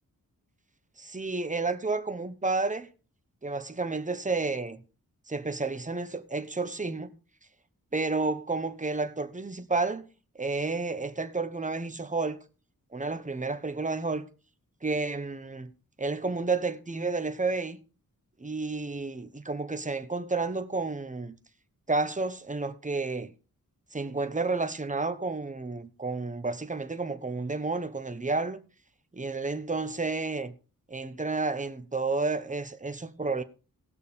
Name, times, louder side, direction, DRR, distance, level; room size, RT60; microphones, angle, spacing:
voice 1, 1.0-2.9 3.4-4.8 5.3-7.1 7.9-10.1 10.3-12.4 12.9-14.2 14.8-15.7 16.0-17.8 18.4-21.3 21.9-23.3 23.9-28.6 29.1-30.5 30.9-33.4, right 3 dB, 20° right, 1.0 m, -31 dB
19.0 x 6.4 x 3.5 m
wide cardioid pair, 95°, 35 cm